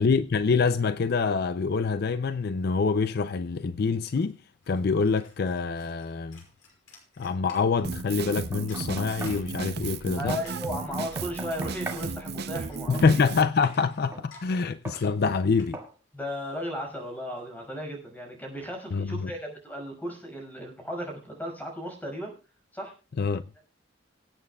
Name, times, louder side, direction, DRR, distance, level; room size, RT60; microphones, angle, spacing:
voice 1, 0.0-4.4 4.7-6.4 7.2-10.4 12.9-15.8 18.9-19.3 23.2-23.4, left 5 dB, 55° left, 0.4 m, -25 dB
sound 1, 3.6-17.4, left 3 dB, 90° left, 5.7 m, -55 dB
Drum kit, 7.8-13.4, right 4 dB, 55° right, 0.7 m, -34 dB
Knock, 8.3-9.5 10.9-12.1 14.1-14.3 14.9-15.1 15.7-16.0, right 2 dB, 15° right, 2.1 m, -41 dB
voice 2, 10.2-13.3 16.1-22.3 22.7-22.9, equal, 10° left, 5.8 m, -35 dB
25.5 x 8.9 x 2.3 m
head